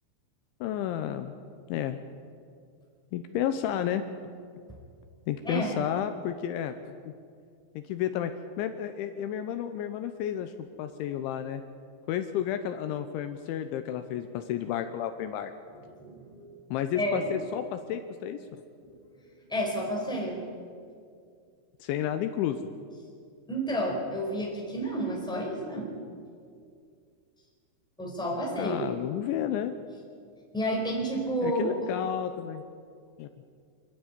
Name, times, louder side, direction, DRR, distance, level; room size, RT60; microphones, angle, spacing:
voice 1, 0.6-1.3 1.7-2.0 3.1-4.0 5.3-6.7 7.1-7.2 7.8-8.3 8.6-10.5 10.8-11.6 12.1-15.5 16.7-18.6 21.8-22.6 28.6-29.7 31.4-32.6 33.2-33.3, left 10 dB, 80° left, 8 dB, 3.0 m, -31 dB
voice 2, 16.0-16.5 16.9-17.3 18.8-19.2 19.5-20.4 23.5-25.9 28.0-28.8 30.5-31.7, equal, ahead, -2 dB, 3.8 m, -30 dB
26.0 x 12.5 x 9.7 m, 2.3 s
omnidirectional pair, 5.7 m